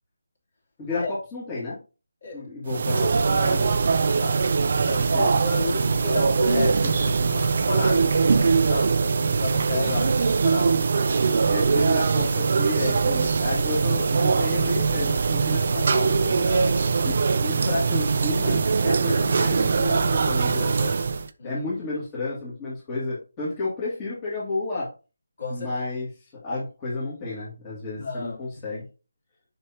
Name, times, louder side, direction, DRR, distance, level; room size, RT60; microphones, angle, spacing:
voice 1, 0.8-1.8 2.3-3.1 3.5-3.7 5.0-5.3 6.5-7.5 9.7-10.1 11.5-16.5 17.0-20.9 21.4-24.9 25.5-26.1 26.4-28.9, left 2 dB, 15° left, 2.1 m, -31 dB
sound 1, 2.7-21.3, right 4 dB, 45° right, 0.5 m, -22 dB
voice 2, 3.1-3.7 4.1-4.5 4.8-6.7 7.7-9.9 10.3-10.8 16.4-17.1 21.4-21.6 25.4-25.8 28.0-28.4 28.7-28.8, left 2 dB, 45° left, 2.9 m, -32 dB
6.6 x 5.8 x 2.8 m
figure-of-eight pair, 170°, 0 cm